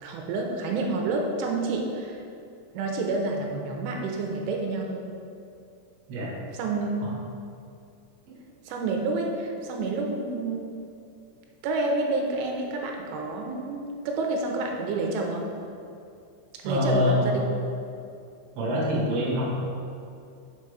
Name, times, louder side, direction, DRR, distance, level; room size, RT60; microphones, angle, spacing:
voice 1, 0.0-2.2 2.7-5.0 6.5-6.9 8.7-10.7 11.6-15.4 16.6-17.4, right 3 dB, 80° right, 1 dB, 3.2 m, -29 dB
voice 2, 16.6-17.3 18.5-19.5, left 1 dB, 65° right, -6 dB, 1.5 m, -25 dB
7.3 x 5.9 x 4.9 m, 2.5 s
omnidirectional pair, 5.7 m